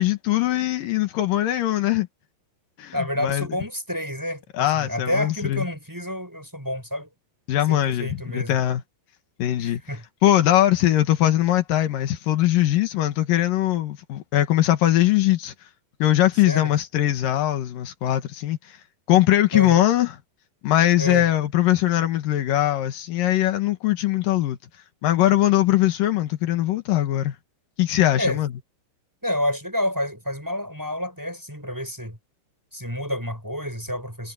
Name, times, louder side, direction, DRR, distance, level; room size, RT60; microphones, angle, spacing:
voice 1, 0.0-2.1 2.8-2.9 3.2-3.5 4.5-5.7 7.5-8.8 9.4-9.8 10.2-15.5 16.0-18.8 19.1-20.1 20.6-24.6 25.0-27.4 27.8-28.5, left 13 dB, 85° left, 3.1 m, -21 dB
voice 2, 2.9-7.1 7.7-8.6 9.6-10.0 16.5-16.7 19.5-19.9 21.0-21.2 28.2-28.4 29.2-32.2 32.7-34.3, left 1 dB, 5° right, 6.9 m, -29 dB
omnidirectional pair, 3.9 m